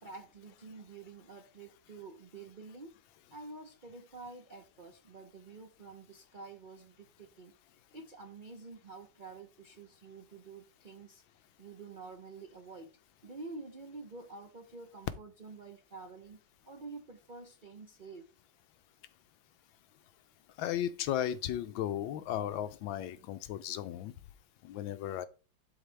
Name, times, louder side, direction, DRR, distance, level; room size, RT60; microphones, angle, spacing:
voice 1, 0.0-3.0 3.3-7.5 7.9-13.0 13.2-18.3, right 3 dB, 70° right, 0.4 m, -49 dB
voice 2, 20.6-24.1 24.6-25.3, left 11 dB, 80° left, 1.4 m, -35 dB
12.0 x 4.0 x 3.3 m
omnidirectional pair, 2.1 m